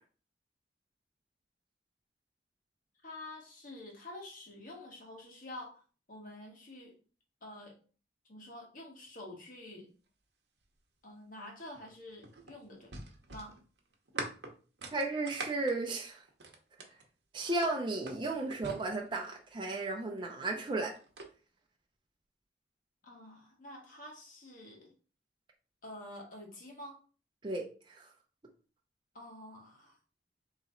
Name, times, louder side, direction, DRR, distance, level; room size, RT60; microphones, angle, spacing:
voice 1, 3.0-5.8 6.1-7.0 7.4-7.8 8.3-9.9 11.0-12.9 13.3-13.6 23.0-24.9 25.8-27.0 29.1-30.0, left 1 dB, 50° left, -1 dB, 1.4 m, -48 dB
sound 1, 11.7-17.0 17.5-19.5 20.5-21.3, right 3 dB, 75° right, 0.9 m, -44 dB
voice 2, 14.9-16.2 17.3-21.0 27.4-28.1, right 2 dB, 25° right, 1 dB, 0.6 m, -34 dB
4.0 x 3.1 x 3.8 m, 0.38 s
head